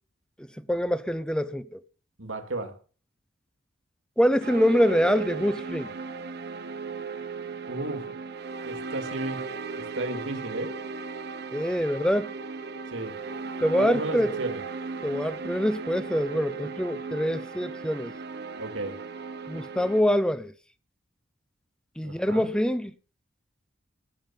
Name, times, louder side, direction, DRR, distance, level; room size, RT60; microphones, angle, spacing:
voice 1, 0.6-1.8 4.2-5.9 11.5-12.3 13.6-14.4 15.0-18.1 19.5-20.5 22.0-22.9, equal, 5° left, 0.9 m, -25 dB
voice 2, 2.2-2.8 7.7-8.1 8.6-10.8 12.9-13.2 13.6-14.6 18.6-19.0 22.0-22.5, right 2 dB, 85° right, 2.7 m, -34 dB
sound 1, 4.4-20.0, right 4 dB, 55° right, 1.0 m, -36 dB
18.0 x 7.4 x 5.8 m
head